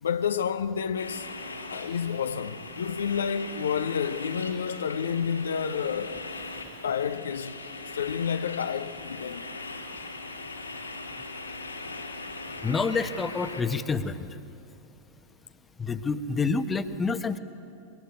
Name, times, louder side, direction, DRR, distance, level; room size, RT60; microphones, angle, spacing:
voice 1, 0.0-1.3 1.7-6.3 6.8-7.6 7.9-9.4, left 7 dB, 65° left, 0.8 m, -29 dB
sound 1, 1.0-13.6, left 2 dB, 85° left, 2.7 m, -40 dB
voice 2, 12.6-14.3 15.8-17.4, left 4 dB, 15° left, 1.2 m, -28 dB
24.5 x 22.5 x 9.6 m
figure-of-eight pair, 90°, 0 cm